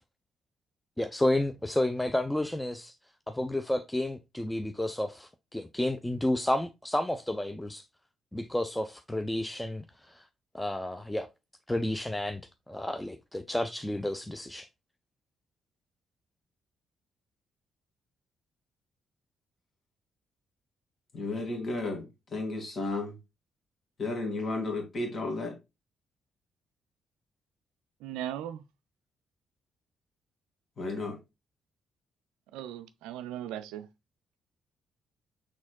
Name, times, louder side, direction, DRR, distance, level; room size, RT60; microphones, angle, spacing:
voice 1, 1.0-2.9 3.3-7.8 8.3-10.3 10.5-11.3 11.7-12.4 12.7-14.7, left 1 dB, 10° left, 0.5 m, -31 dB
voice 2, 21.1-22.1 22.3-23.2 24.0-25.5 30.8-31.2, left 2 dB, 45° left, 2.1 m, -33 dB
voice 3, 28.0-28.6 32.5-33.9, right 11 dB, 70° right, 0.4 m, -38 dB
6.2 x 3.7 x 2.2 m
figure-of-eight pair, 40°, 0 cm